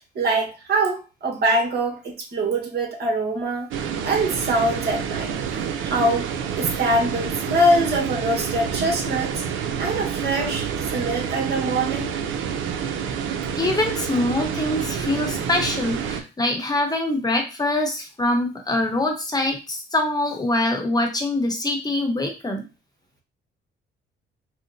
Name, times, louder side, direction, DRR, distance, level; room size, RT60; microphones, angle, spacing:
voice 1, 0.1-3.7 4.0-5.3 5.8-6.3 6.5-9.4 9.8-12.1, right 1 dB, 55° right, -1 dB, 1.3 m, -23 dB
sound 1, 3.7-16.2, right 7 dB, 80° right, 0.5 m, -28 dB
voice 2, 13.6-22.7, left 2 dB, 20° left, 3 dB, 0.9 m, -24 dB
4.0 x 2.1 x 2.6 m, 0.30 s
cardioid pair, 90°, 20 cm